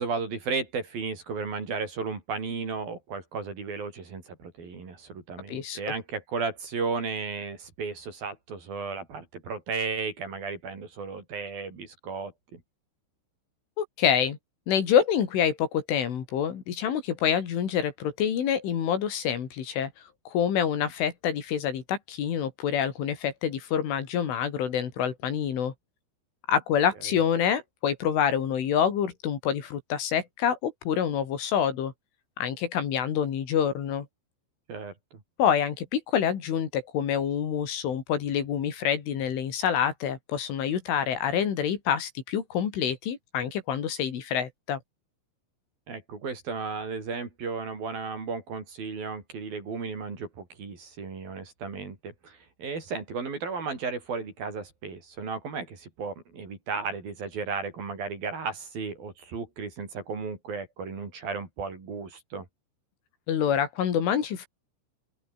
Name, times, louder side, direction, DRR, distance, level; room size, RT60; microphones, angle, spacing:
voice 1, 0.0-12.6 27.0-27.2 34.7-35.2 45.9-62.5, right 4 dB, 45° right, 6.7 m, -34 dB
voice 2, 5.5-5.8 13.8-14.4 14.7-19.9 20.3-25.7 26.5-31.9 32.4-34.1 35.4-44.8 63.3-64.5, left 8 dB, 75° left, 5.7 m, -27 dB
open air
omnidirectional pair, 5.8 m